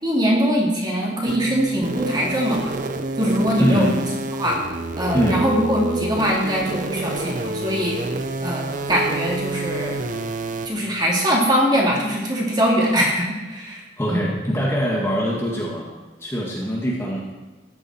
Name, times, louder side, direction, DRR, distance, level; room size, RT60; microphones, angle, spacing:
voice 1, 0.0-2.7 3.2-4.0 4.4-4.6 5.0-8.0 8.4-10.0 10.6-13.8 14.1-14.2, equal, 25° right, -3 dB, 3.0 m, -22 dB
sound 1, 1.3-10.7, right 2 dB, 45° right, 0.8 m, -28 dB
voice 2, 3.6-4.0 5.1-5.4 14.0-15.9 16.2-17.3, equal, 15° left, -3 dB, 1.8 m, -23 dB
14.5 x 11.0 x 4.5 m, 1.3 s
head